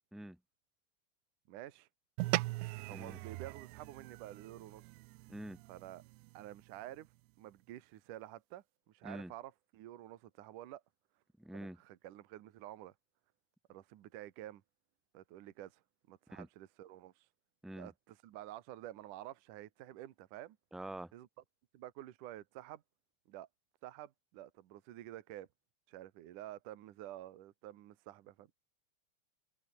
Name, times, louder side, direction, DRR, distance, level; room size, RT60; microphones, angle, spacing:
voice 1, 1.5-1.9 2.9-4.8 5.7-6.0 6.3-7.1 7.4-10.8 11.5-12.9 13.7-14.6 15.1-15.8 16.1-17.3 17.8-20.6 21.1-21.3 21.7-22.8 23.3-23.5 23.8-25.5 25.9-28.5, right 14 dB, 65° right, 2.1 m, -50 dB
sound 1, 2.2-6.8, right 22 dB, 80° right, 2.7 m, -40 dB
voice 2, 2.9-3.2 5.3-5.6 9.0-9.3 11.4-11.8 16.3-16.5 17.6-17.9 20.7-21.1, right 1 dB, ahead, 1.9 m, -45 dB
omnidirectional pair, 5.3 m